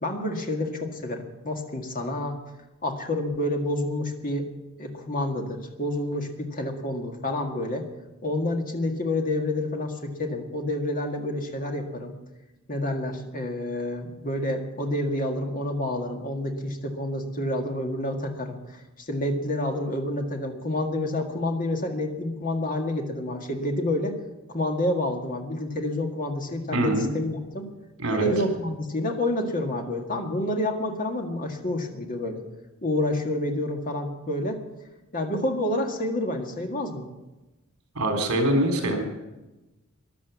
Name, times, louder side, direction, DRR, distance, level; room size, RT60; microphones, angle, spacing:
voice 1, 0.0-2.4 2.8-4.5 4.8-7.9 8.2-12.1 12.7-18.8 19.1-24.2 24.5-27.7 28.1-32.4 32.8-34.6 35.1-37.1, left 1 dB, 40° left, 3 dB, 1.9 m, -28 dB
voice 2, 26.7-27.1 28.0-28.3 38.0-39.0, right 1 dB, 70° right, 3 dB, 3.7 m, -24 dB
14.0 x 11.5 x 7.1 m, 1.1 s
head